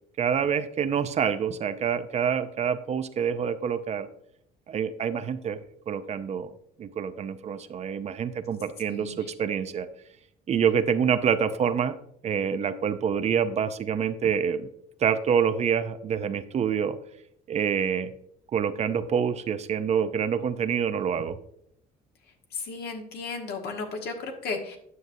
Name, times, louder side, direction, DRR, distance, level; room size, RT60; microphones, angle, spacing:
voice 1, 0.2-4.1 4.7-9.9 10.5-12.0 12.2-14.7 15.0-17.0 17.5-18.1 18.5-21.4, right 7 dB, 40° right, 11 dB, 0.5 m, -27 dB
voice 2, 8.9-9.2 22.5-24.8, left 4 dB, 70° left, 3 dB, 1.4 m, -34 dB
9.4 x 6.5 x 2.6 m, 0.72 s
cardioid pair, 110°, 17 cm